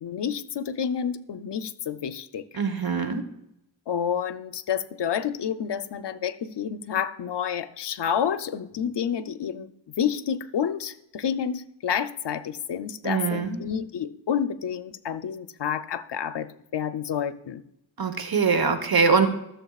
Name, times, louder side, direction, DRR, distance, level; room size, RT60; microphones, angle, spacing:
voice 1, 0.0-2.5 3.9-17.6, left 8 dB, 60° left, 12 dB, 0.7 m, -29 dB
voice 2, 2.5-3.2 13.0-13.6 18.0-19.3, right 5 dB, 50° right, 9 dB, 1.2 m, -23 dB
15.0 x 7.2 x 2.4 m, 0.83 s
cardioid pair, 65°, 47 cm